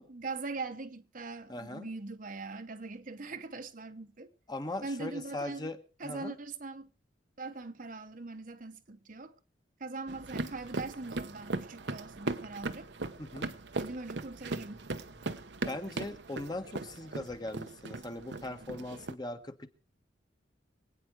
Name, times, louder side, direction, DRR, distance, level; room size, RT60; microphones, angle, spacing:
voice 1, 0.1-4.3 4.8-5.7 6.0-6.9 7.4-9.3 9.8-12.9 13.8-14.8, right 3 dB, 50° right, 1.1 m, -41 dB
voice 2, 1.5-1.9 4.5-5.8 6.0-6.3 13.2-13.5 15.7-19.7, left 2 dB, 25° left, 1.4 m, -39 dB
sound 1, 10.1-19.1, right 2 dB, 75° right, 1.0 m, -39 dB
25.0 x 9.3 x 4.7 m
head